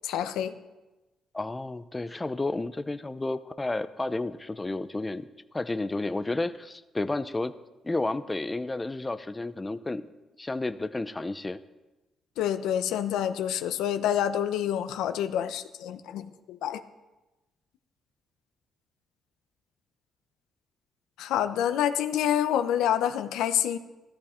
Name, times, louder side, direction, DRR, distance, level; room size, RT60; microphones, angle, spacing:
voice 1, 0.0-0.5 12.4-16.8 21.2-23.8, left 10 dB, 90° left, 10 dB, 0.8 m, -27 dB
voice 2, 1.3-5.3 5.5-7.5 7.8-10.0 10.4-11.6, left 2 dB, 15° left, 11 dB, 0.6 m, -31 dB
14.0 x 13.5 x 4.4 m, 1.1 s
cardioid pair, 90°, 0 cm